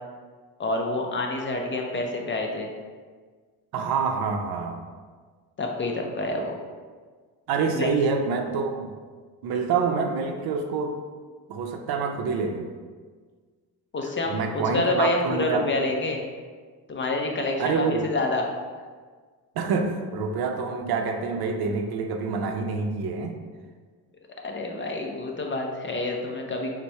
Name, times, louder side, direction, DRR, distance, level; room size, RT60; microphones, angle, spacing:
voice 1, 0.6-2.7 5.6-6.5 7.7-7.9 13.9-16.2 16.9-18.5 24.4-26.7, left 2 dB, 30° left, 1 dB, 0.5 m, -27 dB
voice 2, 3.7-4.8 7.5-8.9 9.4-11.0 11.5-12.7 14.3-15.7 17.6-18.1 19.6-23.4, right 5 dB, 60° right, 4 dB, 0.6 m, -27 dB
4.1 x 2.2 x 4.5 m, 1.5 s
cardioid pair, 100°, 41 cm